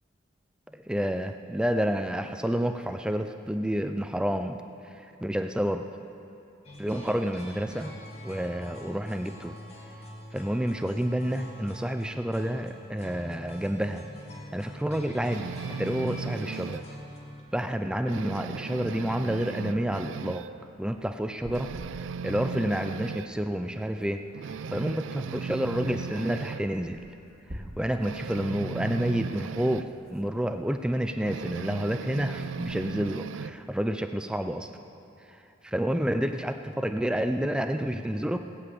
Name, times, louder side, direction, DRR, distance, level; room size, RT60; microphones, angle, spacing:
voice 1, 0.7-5.9 6.8-8.0 8.2-9.6 10.3-14.1 14.5-16.8 17.5-20.5 20.8-21.7 22.2-24.3 24.7-27.0 27.5-34.7 35.3-38.5, equal, 5° right, 7 dB, 0.3 m, -29 dB
sound 1, 6.6-17.4, left 1 dB, 35° left, 1.7 m, -44 dB
sound 2, 15.3-16.9 17.3-17.5 17.8-20.6 20.9-21.0 21.4-23.3 23.8-23.9 24.3-26.7 28.0-29.9 31.2-33.6, right 5 dB, 75° right, 0.4 m, -37 dB
sound 3, 21.3-22.6 22.9-23.0 23.2-23.3 23.4-24.6 25.5-25.6 25.9-26.0 26.7-28.1 28.9-31.2 31.5-31.9 32.3-33.4, equal, 35° right, 1.3 m, -48 dB
17.5 x 7.1 x 8.4 m, 2.8 s
head